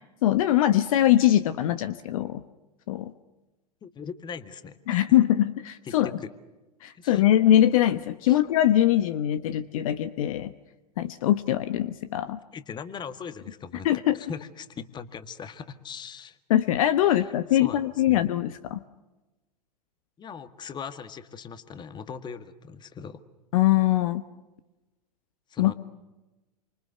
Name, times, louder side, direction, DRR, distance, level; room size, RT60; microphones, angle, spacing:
voice 1, 0.2-2.4 2.9-3.1 4.9-6.1 6.8-10.5 11.0-12.4 13.8-14.2 16.5-18.8 23.5-24.2 25.6-25.7, left 12 dB, 55° left, 12 dB, 1.2 m, -22 dB
voice 2, 3.8-5.2 5.9-6.3 7.0-7.2 8.3-8.4 12.5-13.9 14.1-16.4 17.1-17.3 17.6-17.8 18.1-18.2 20.2-23.2 25.5-25.7, left 6 dB, 20° left, 11 dB, 1.7 m, -40 dB
27.5 x 25.5 x 6.8 m, 1.1 s
figure-of-eight pair, 100°, 21 cm